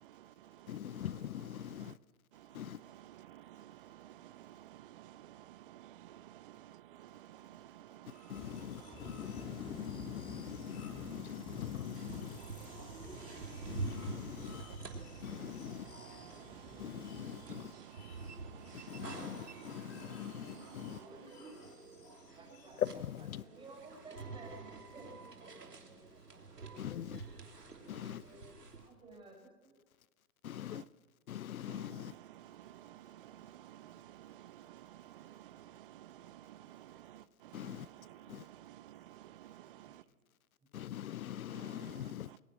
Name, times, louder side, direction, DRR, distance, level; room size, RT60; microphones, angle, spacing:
voice 1, 0.0-2.0 2.3-21.3 30.7-30.9 31.6-40.1 41.5-42.4, right 13 dB, 35° right, 0.8 m, -54 dB
voice 2, 0.7-1.9 2.5-2.8 8.3-12.4 13.7-14.7 15.2-15.9 16.8-17.7 18.7-21.0 22.8-23.4 26.8-27.2 27.9-28.2 30.4-30.8 31.3-32.1 37.5-37.9 38.3-38.4 40.7-42.3, left 11 dB, 65° left, 0.7 m, -42 dB
sound 1, 8.1-23.0, left 4 dB, 45° left, 6.9 m, -59 dB
sound 2, 8.3-17.5, left 2 dB, 10° left, 2.6 m, -52 dB
sound 3, 11.9-28.9, right 3 dB, 90° right, 3.3 m, -48 dB
voice 3, 21.0-21.5 22.3-22.8 23.4-25.1 25.4-26.0 26.7-27.1 27.9-28.5 28.8-29.8 30.5-30.7 39.7-39.9, right 2 dB, 10° right, 6.6 m, -55 dB
22.0 x 20.5 x 6.3 m
hypercardioid pair, 130°, 46 cm